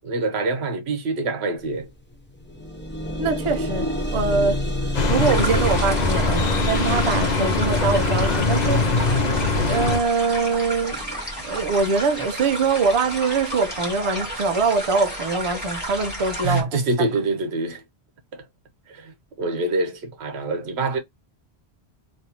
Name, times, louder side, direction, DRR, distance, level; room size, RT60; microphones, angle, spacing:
voice 1, 0.0-1.9 16.4-17.8 18.3-18.4 18.9-21.0, right 2 dB, 75° right, 1.1 m, -25 dB
sound 1, 1.6-1.8 2.1-13.1 13.9-14.0 14.5-14.6, equal, 15° left, 0.6 m, -30 dB
voice 2, 3.2-9.2 9.6-11.2 11.4-16.7, right 4 dB, 45° right, 0.4 m, -23 dB
sound 2, 4.9-10.0, left 3 dB, 50° left, 0.7 m, -22 dB
sound 3, 5.2-16.6, right 1 dB, 10° right, 1.6 m, -32 dB
3.2 x 2.6 x 2.8 m
omnidirectional pair, 1.1 m